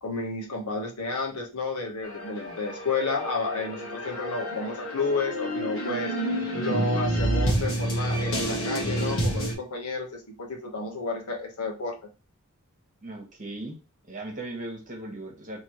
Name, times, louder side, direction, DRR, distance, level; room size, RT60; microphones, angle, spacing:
voice 1, 0.0-12.0, left 3 dB, 85° left, 1 dB, 1.2 m, -31 dB
sound 1, 2.0-9.5, right 1 dB, 65° left, 1.4 m, -29 dB
voice 2, 13.0-13.8 14.1-15.6, right 2 dB, 35° right, 2 dB, 1.2 m, -37 dB
4.5 x 3.0 x 3.0 m, 0.33 s
head